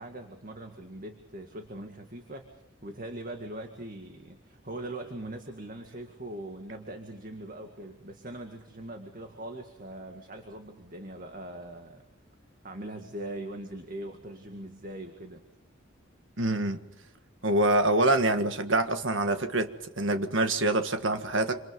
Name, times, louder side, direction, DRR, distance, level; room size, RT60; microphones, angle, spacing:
voice 1, 0.0-12.0 12.6-15.4, right 1 dB, 45° right, 2.1 m, -41 dB
voice 2, 16.4-16.8 17.4-21.6, right 2 dB, 70° right, 1.7 m, -25 dB
27.0 x 27.0 x 5.4 m
head